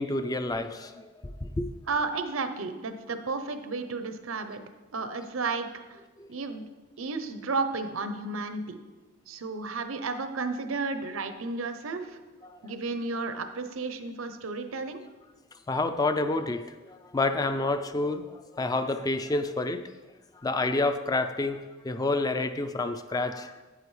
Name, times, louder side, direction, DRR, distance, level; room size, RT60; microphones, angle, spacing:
voice 1, 0.0-1.7 6.2-6.3 12.4-12.7 15.7-19.8 20.4-23.5, left 2 dB, 20° left, 9 dB, 0.3 m, -29 dB
voice 2, 1.9-4.6 4.9-6.0 6.3-6.7 7.0-8.8 9.3-12.2 12.6-15.0, right 3 dB, 85° right, 9 dB, 0.7 m, -32 dB
9.8 x 8.0 x 3.2 m, 1.2 s
head